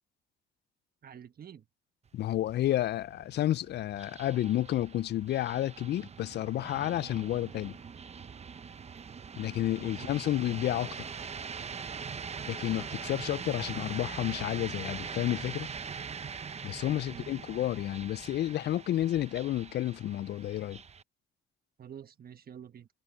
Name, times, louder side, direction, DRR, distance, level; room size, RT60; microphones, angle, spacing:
voice 1, 1.0-1.6 9.9-10.2 16.8-17.3 21.8-22.9, right 8 dB, 50° right, 1.4 m, -48 dB
voice 2, 2.1-7.8 9.4-11.0 12.5-15.7 16.6-20.8, left 13 dB, 60° left, 0.4 m, -31 dB
sound 1, 2.1-21.0, right 6 dB, 35° right, 0.8 m, -42 dB
cardioid pair, 90°, 20 cm